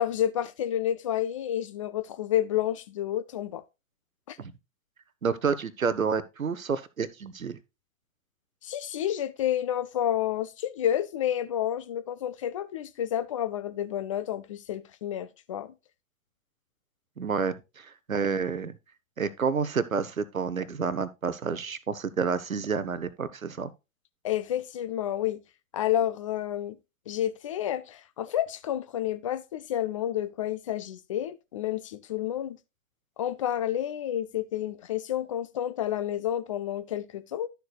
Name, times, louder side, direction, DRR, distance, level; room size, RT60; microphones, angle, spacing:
voice 1, 0.0-3.6 4.3-4.4 8.6-15.7 24.2-25.4 25.7-26.8 27.1-32.6 33.2-37.5, left 11 dB, 25° left, 0.4 m, -30 dB
voice 2, 5.2-7.6 17.2-18.7 19.2-23.7, right 5 dB, 80° right, 0.9 m, -29 dB
11.5 x 6.8 x 2.3 m
figure-of-eight pair, 105°, 41 cm